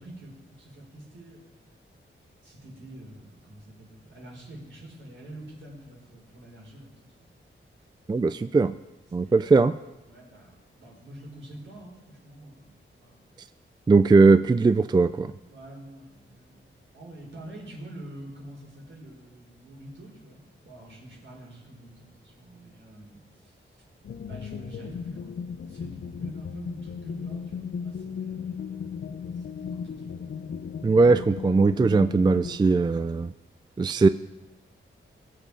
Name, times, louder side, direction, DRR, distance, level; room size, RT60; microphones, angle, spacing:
voice 1, 0.0-1.6 2.4-7.3 9.1-9.5 10.1-13.3 15.5-16.6 16.9-23.8 24.3-25.4 25.6-30.2, right 1 dB, 65° right, -2 dB, 4.8 m, -46 dB
voice 2, 8.1-8.7 9.1-9.7 13.9-15.3 30.8-33.3 33.8-34.1, right 4 dB, 20° right, 12 dB, 0.3 m, -19 dB
sound 1, 24.0-32.6, left 6 dB, 60° left, 0.6 m, -36 dB
22.0 x 7.6 x 4.9 m, 1.1 s
wide cardioid pair, 100°, 21 cm